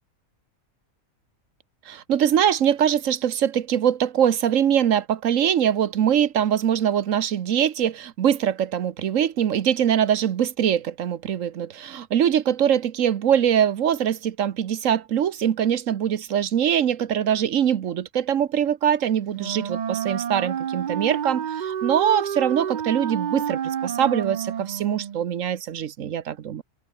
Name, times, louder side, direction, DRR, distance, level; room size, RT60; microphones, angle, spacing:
voice 1, 1.9-26.6, right 9 dB, 75° right, 1.3 m, -23 dB
Wind instrument woodwind instrument, 19.3-25.2, right 9 dB, 50° right, 0.5 m, -29 dB
omnidirectional pair, 1.4 m